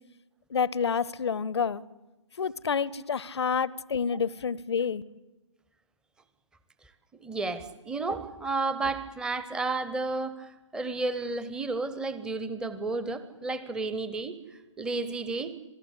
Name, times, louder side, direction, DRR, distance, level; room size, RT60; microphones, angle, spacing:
voice 1, 0.5-1.8 2.4-5.0, left 6 dB, 55° left, 0.7 m, -28 dB
voice 2, 7.2-14.4 14.8-15.6, right 3 dB, 5° right, 0.8 m, -32 dB
26.5 x 17.5 x 8.3 m
figure-of-eight pair, 135°, 16 cm